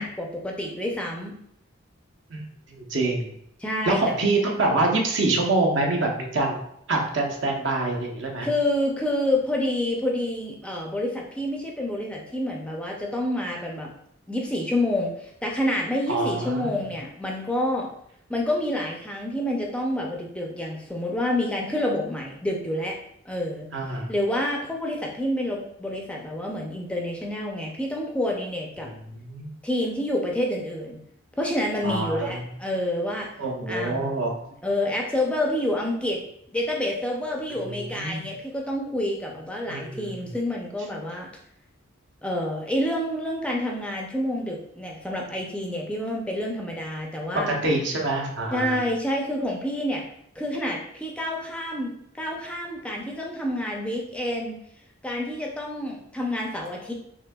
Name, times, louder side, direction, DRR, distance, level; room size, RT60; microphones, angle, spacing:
voice 1, 0.0-1.3 3.6-4.2 8.4-13.9 14.3-17.9 18.3-23.0 23.3-23.7 24.1-28.9 29.6-31.0 31.4-33.3 33.7-34.1 34.6-36.2 36.5-41.3 42.2-47.5 48.5-50.0 50.4-54.6 55.0-56.9, left 1 dB, 5° left, 0 dB, 0.4 m, -28 dB
voice 2, 2.3-3.3 3.8-6.6 6.9-8.5 16.1-16.9 23.7-24.1 28.8-29.5 31.8-32.5 33.4-34.3 37.6-38.2 39.7-40.3 47.3-48.9, right 2 dB, 60° right, 0 dB, 0.8 m, -26 dB
5.9 x 2.7 x 2.2 m, 0.74 s
head